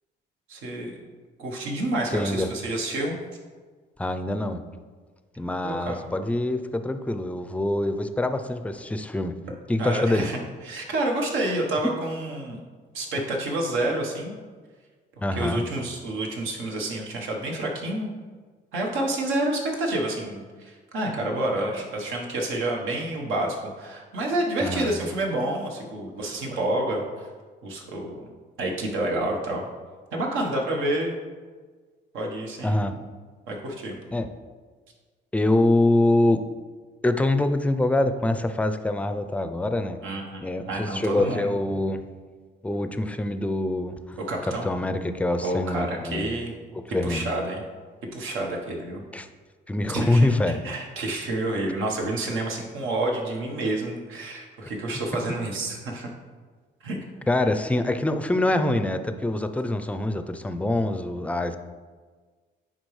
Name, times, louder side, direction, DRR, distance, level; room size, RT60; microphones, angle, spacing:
voice 1, 0.5-0.9 1.4-3.2 5.6-6.0 9.8-10.4 10.6-12.6 12.9-14.4 15.3-18.1 18.7-27.3 27.6-28.2 28.6-29.7 30.1-31.2 32.1-33.0 33.5-33.9 40.0-41.6 44.3-44.7 45.4-46.5 47.0-47.6 48.1-49.0 49.9-50.2 50.5-56.1 56.8-57.0, right 1 dB, 90° right, 0 dB, 1.2 m, -29 dB
voice 2, 2.1-2.5 4.0-4.6 5.4-9.3 9.7-10.3 15.2-15.6 24.6-24.9 32.6-33.0 34.1-34.3 35.3-36.4 37.0-40.0 40.4-42.0 42.6-44.2 44.6-46.4 46.8-47.3 49.1-49.3 49.7-50.6 57.3-61.6, left 2 dB, 5° left, 9 dB, 0.4 m, -25 dB
9.7 x 3.8 x 3.2 m, 1.5 s
cardioid pair, 90°, 20 cm